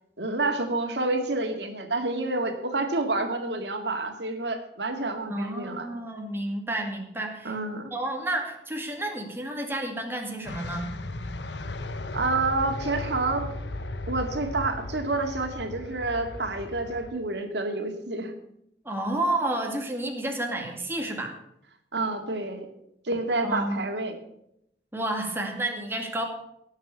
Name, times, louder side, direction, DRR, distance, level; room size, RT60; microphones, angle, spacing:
voice 1, 0.2-5.9 7.4-7.9 12.1-13.5 14.1-18.3 21.9-22.7 23.0-24.2, right 2 dB, 75° right, 5 dB, 2.2 m, -28 dB
voice 2, 5.3-7.5 7.9-10.9 18.8-21.3 23.4-23.9 24.9-26.2, right 1 dB, 15° right, 2 dB, 2.4 m, -30 dB
sound 1, 10.5-17.1, left 2 dB, 85° left, 1.1 m, -36 dB
17.5 x 7.3 x 6.9 m, 0.76 s
head